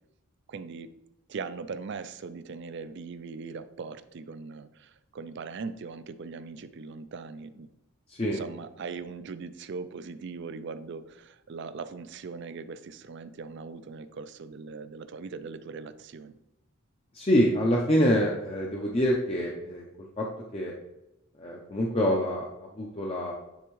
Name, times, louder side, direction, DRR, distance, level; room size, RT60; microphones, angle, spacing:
voice 1, 0.5-0.9 1.3-7.7 8.3-16.4, right 4 dB, 50° right, 13 dB, 0.4 m, -40 dB
voice 2, 8.1-8.4 17.1-20.3 20.5-20.7 21.4-23.3, equal, 25° left, -1 dB, 0.5 m, -26 dB
10.0 x 3.5 x 3.1 m, 0.95 s
head